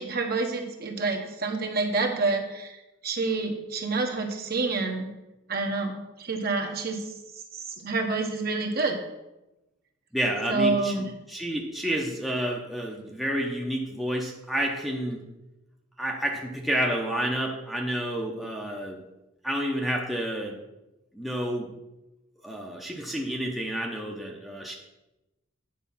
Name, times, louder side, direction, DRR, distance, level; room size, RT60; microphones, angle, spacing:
voice 1, 0.0-2.8 3.0-5.1 5.5-7.1 7.5-9.0 10.5-11.1, right 3 dB, 45° right, 2 dB, 1.2 m, -28 dB
voice 2, 10.1-10.9 11.3-15.2 16.0-19.0 19.4-20.6 21.2-21.7 22.4-24.8, right 1 dB, ahead, -1 dB, 0.8 m, -29 dB
9.3 x 5.5 x 5.5 m, 0.98 s
head